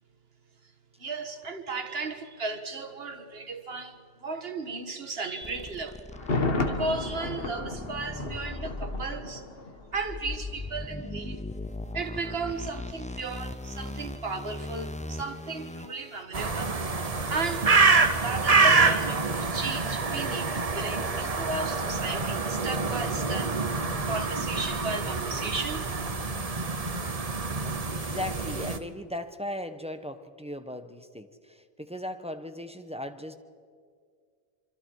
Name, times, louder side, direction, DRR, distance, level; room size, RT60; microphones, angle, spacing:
voice 1, 1.0-6.0 6.3-9.5 9.9-11.4 11.9-16.7 17.3-17.7 18.2-23.6 24.1-25.9, right 3 dB, 75° right, 6 dB, 1.8 m, -35 dB
sound 1, 5.4-16.2, left 2 dB, 10° left, 0.4 m, -39 dB
Thunder, 6.1-10.0 10.3-10.4, left 3 dB, 65° left, 1.7 m, -32 dB
sound 2, 16.3-28.8, right 4 dB, 40° right, 1.1 m, -26 dB
voice 2, 27.9-33.3, left 1 dB, 5° right, 8 dB, 1.0 m, -37 dB
26.0 x 26.0 x 4.7 m, 2.1 s
omnidirectional pair, 1.0 m